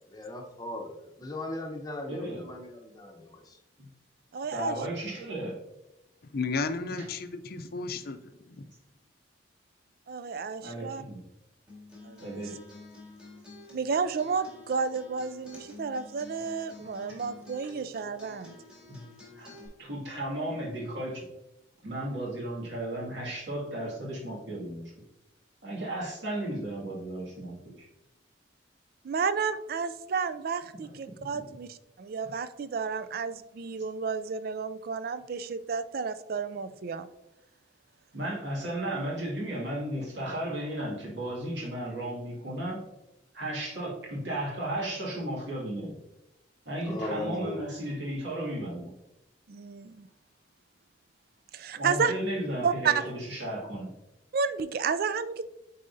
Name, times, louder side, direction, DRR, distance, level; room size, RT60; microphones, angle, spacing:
voice 1, 0.1-3.6 46.8-47.6, left 1 dB, 20° left, 2 dB, 0.8 m, -38 dB
voice 2, 2.1-2.5 4.5-5.6 7.0-7.1 10.6-11.2 12.2-12.6 18.9-19.0 19.3-19.5 19.8-21.3 21.8-24.9 25.6-27.9 31.3-31.4 38.1-42.9 43.3-45.9 46.7-48.9 51.7-53.9, right 1 dB, 75° right, -5 dB, 2.2 m, -34 dB
voice 3, 4.3-4.8 10.1-11.0 12.0-12.4 13.7-18.6 29.0-37.1 49.5-50.1 51.5-52.1 52.6-53.0 54.3-55.5, right 5 dB, 55° right, 13 dB, 0.4 m, -31 dB
voice 4, 6.3-8.6, left 4 dB, 55° left, 10 dB, 0.5 m, -33 dB
Acoustic guitar, 11.7-19.7, left 2 dB, 5° right, 1.7 m, -49 dB
8.5 x 4.1 x 2.7 m, 0.93 s
head